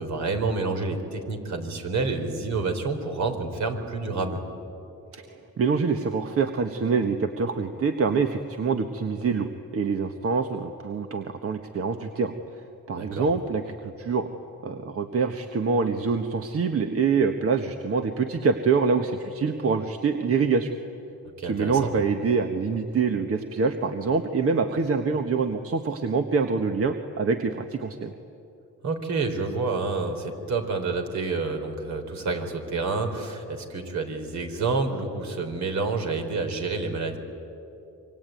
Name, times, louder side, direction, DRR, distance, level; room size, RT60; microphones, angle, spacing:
voice 1, 0.0-4.4 12.9-13.3 21.4-21.9 28.8-37.2, right 3 dB, 65° right, 5 dB, 4.2 m, -28 dB
voice 2, 5.6-9.5 9.7-12.3 12.9-14.3 14.6-20.7 21.4-28.1, right 5 dB, 50° right, 6 dB, 1.4 m, -25 dB
26.5 x 24.5 x 9.2 m, 2.9 s
cardioid pair, 90°, 30 cm